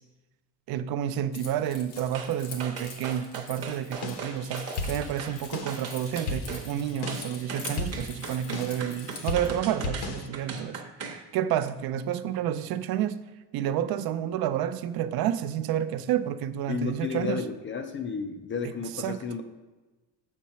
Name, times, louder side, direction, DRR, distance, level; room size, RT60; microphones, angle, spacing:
voice 1, 0.7-10.8 11.1-13.2 13.5-17.5 18.6-19.2, right 10 dB, 60° right, 12 dB, 0.5 m, -30 dB
Keys jangling, 1.3-9.5, left 5 dB, 90° left, 1.7 m, -45 dB
sound 1, 2.1-2.3 2.6-5.4 5.7-6.6 7.1-11.2 11.6-11.7, right 5 dB, 35° right, 0.9 m, -38 dB
sound 2, 3.9-10.3, left 3 dB, 60° left, 1.0 m, -37 dB
voice 2, 16.7-19.4, left 5 dB, 30° left, 7 dB, 0.4 m, -32 dB
7.3 x 4.3 x 5.6 m, 1.2 s
cardioid pair, 165°, 43 cm